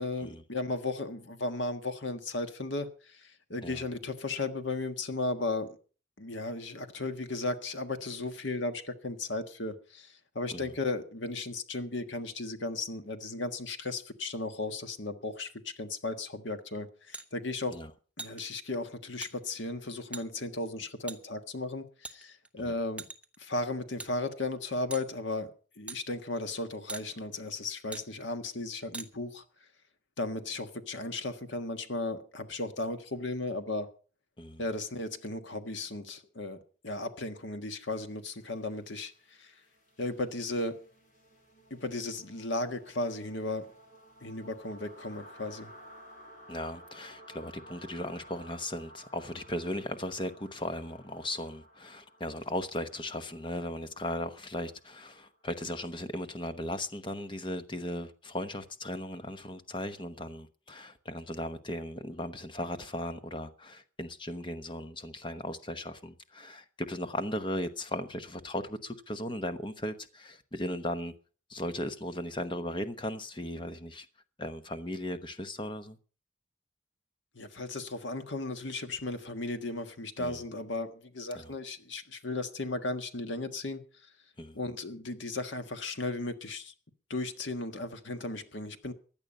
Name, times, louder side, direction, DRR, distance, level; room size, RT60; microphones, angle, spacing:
voice 1, 0.0-5.8 6.2-17.8 18.2-23.1 23.4-25.5 25.8-29.4 30.2-33.9 34.6-36.6 36.8-39.1 39.4-39.5 40.0-40.8 41.7-43.7 44.2-45.7 77.3-83.8 84.5-86.7 87.1-88.9, left 2 dB, 70° left, 1.5 m, -35 dB
sound 1, 17.1-17.3 18.2-18.4 19.2-19.3 20.1-20.3 21.1-21.2 22.0-22.5 23.0-23.4 24.0-24.1 24.9-25.1 25.9-26.0 26.9-27.1 27.9-28.1 28.9-29.1, right 3 dB, 5° right, 0.7 m, -41 dB
sound 2, 38.2-56.0, equal, 40° left, 4.4 m, -55 dB
voice 2, 46.5-71.1 71.5-74.1 74.4-76.0 80.2-80.4 81.3-81.5 84.4-84.6, left 1 dB, 25° left, 1.0 m, -37 dB
16.0 x 10.5 x 5.4 m
head